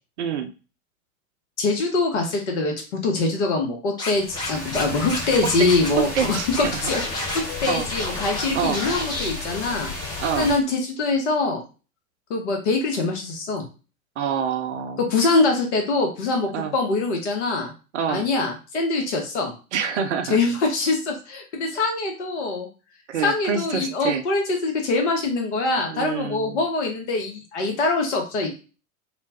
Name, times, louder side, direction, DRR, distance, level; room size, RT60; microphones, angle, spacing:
voice 1, 0.2-0.5 5.4-5.7 5.9-6.8 7.7-7.9 8.5-8.8 10.2-10.5 14.2-15.0 16.5-16.7 17.9-18.3 19.7-20.4 23.1-24.2 25.9-26.6, right 7 dB, 55° right, 8 dB, 0.5 m, -26 dB
voice 2, 1.6-7.2 7.6-9.9 10.3-11.6 12.3-13.7 15.0-17.7 18.1-19.5 20.3-22.7 23.2-28.5, left 3 dB, 50° left, 2 dB, 1.0 m, -23 dB
Scratching (performance technique), 4.0-4.8 5.1-5.9 6.2-6.3 6.5-8.4 8.7-9.3, left 2 dB, 10° left, 0.4 m, -30 dB
sound 1, 4.1-10.6, left 3 dB, 35° left, 1.4 m, -33 dB
2.4 x 2.1 x 3.3 m, 0.33 s
figure-of-eight pair, 85°, 43 cm